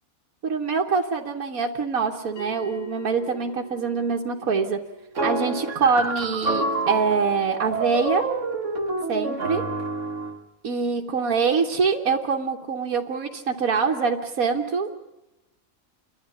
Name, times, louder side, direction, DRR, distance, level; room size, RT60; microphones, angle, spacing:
voice 1, 0.4-4.8 5.2-8.3 9.1-9.6 10.6-15.0, right 5 dB, 80° right, -1 dB, 1.6 m, -24 dB
Bell, 2.4-7.4, right 2 dB, 65° left, 5.4 m, -43 dB
sound 1, 5.1-10.4, right 2 dB, 60° right, 1.9 m, -28 dB
28.5 x 12.0 x 9.8 m, 0.99 s
omnidirectional pair, 1.5 m